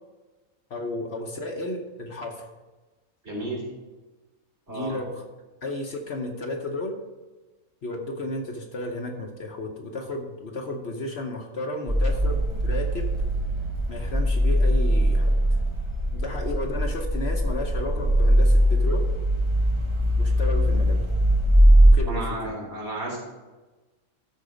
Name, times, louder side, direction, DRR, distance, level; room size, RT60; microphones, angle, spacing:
voice 1, 0.7-2.5 4.7-5.2 5.6-7.0 7.8-13.1 13.9-15.6 16.1-19.1 20.2-21.1 21.8-22.6, left 2 dB, 55° left, 3 dB, 1.1 m, -33 dB
voice 2, 3.2-3.6 4.7-4.9 22.0-23.2, right 2 dB, 50° right, -3 dB, 4.1 m, -32 dB
sound 1, 11.9-21.9, equal, 25° right, 0.9 m, -21 dB
13.0 x 4.5 x 5.1 m, 1.2 s
omnidirectional pair, 1.4 m